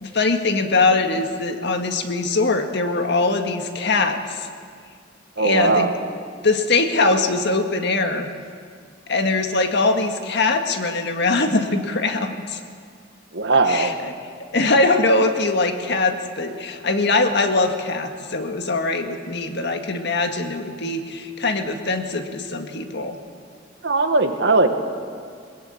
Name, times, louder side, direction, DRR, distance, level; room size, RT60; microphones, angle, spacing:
voice 1, 0.0-4.5 5.4-5.9 6.4-8.3 9.1-12.6 13.7-14.1 14.5-23.2, left 3 dB, 65° left, 6 dB, 1.8 m, -22 dB
voice 2, 5.4-5.9 13.3-14.0 23.8-24.7, right 3 dB, 65° right, 6 dB, 1.7 m, -19 dB
21.5 x 19.5 x 8.6 m, 2.1 s
head